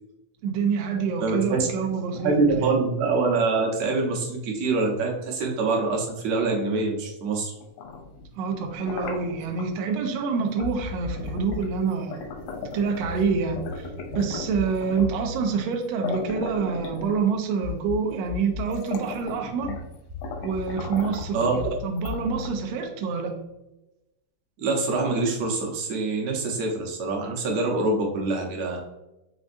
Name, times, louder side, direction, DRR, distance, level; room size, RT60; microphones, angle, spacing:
voice 1, 0.4-2.7 8.4-12.2 12.6-13.9 14.1-19.8 20.4-23.3, right 5 dB, 85° right, 4 dB, 1.5 m, -27 dB
voice 2, 1.2-1.7 2.1-7.5 21.3-21.6 24.6-28.8, right 3 dB, 70° right, 0 dB, 1.8 m, -25 dB
sound 1, 7.6-9.7 10.6-10.8 11.1-13.2 13.6-15.2 15.7-15.8 16.0-17.5 18.2-18.3 18.6-19.9 20.2-21.4 22.0-22.8, left 4 dB, 80° left, 1.4 m, -37 dB
sound 2, 10.6-11.9 13.0-16.7 17.6-18.9 19.6-23.5, left 4 dB, 55° right, 0.9 m, -37 dB
5.2 x 3.5 x 2.5 m, 0.96 s
omnidirectional pair, 3.6 m